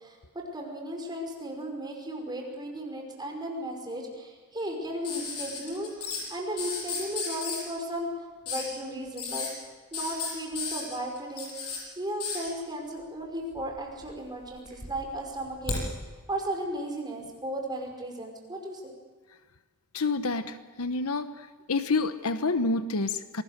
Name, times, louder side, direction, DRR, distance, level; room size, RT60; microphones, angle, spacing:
voice 1, 0.0-8.1 8.5-9.5 9.9-11.5 12.0-15.8 16.3-18.9, right 1 dB, 20° right, 1 dB, 5.5 m, -35 dB
sound 1, 5.0-6.2 6.6-7.6 8.5-8.7 9.1-9.5 9.9-11.8 12.2-12.5 13.5-14.1 14.4-15.8 17.2-17.3, left 5 dB, 90° left, 7.9 m, -34 dB
voice 2, 19.9-21.3 21.7-23.4, left 3 dB, 70° left, 10 dB, 1.1 m, -28 dB
27.0 x 19.5 x 6.6 m, 1.4 s
head